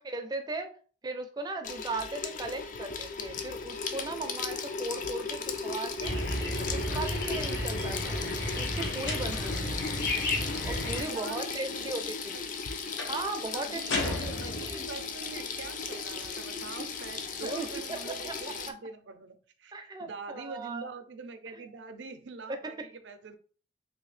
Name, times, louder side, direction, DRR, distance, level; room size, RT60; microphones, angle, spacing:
voice 1, 0.0-0.7 1.0-6.2 6.6-8.3 8.5-9.9 10.6-12.3 13.0-14.3 14.6-14.8 16.8-16.9 17.4-18.4 18.7-18.8 19.7-20.9 21.5-21.6 22.5-22.9, right 2 dB, 20° right, 0.4 m, -37 dB
Water tap faucet / Sink (filling or washing), 1.6-18.7, left 4 dB, 45° left, 0.4 m, -36 dB
sound 1, 6.0-11.0, left 1 dB, 60° left, 0.9 m, -33 dB
sound 2, 9.1-9.7 13.0-13.3 13.9-15.0, left 2 dB, 85° left, 0.7 m, -34 dB
voice 2, 11.0-11.9 13.5-19.7 20.0-23.3, right 4 dB, 80° right, 0.5 m, -44 dB
3.1 x 2.8 x 3.2 m
head